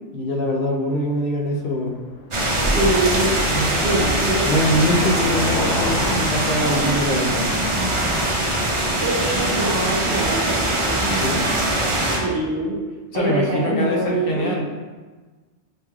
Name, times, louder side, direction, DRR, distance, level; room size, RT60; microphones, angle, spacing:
voice 1, 0.1-2.0 3.5-4.1 4.4-7.5 11.2-11.5 13.1-14.6, left 1 dB, 60° left, -1 dB, 0.7 m, -23 dB
Car passing by, 1.5-9.8, left 2 dB, 85° left, 1.0 m, -34 dB
sound 1, 2.3-12.2, right 1 dB, 40° right, 0.5 m, -22 dB
voice 2, 2.6-3.3 3.8-4.5 9.0-11.2 12.0-12.8 13.1-14.6, right 2 dB, 65° right, -5 dB, 0.9 m, -24 dB
5.3 x 3.0 x 2.3 m, 1.3 s
omnidirectional pair, 1.2 m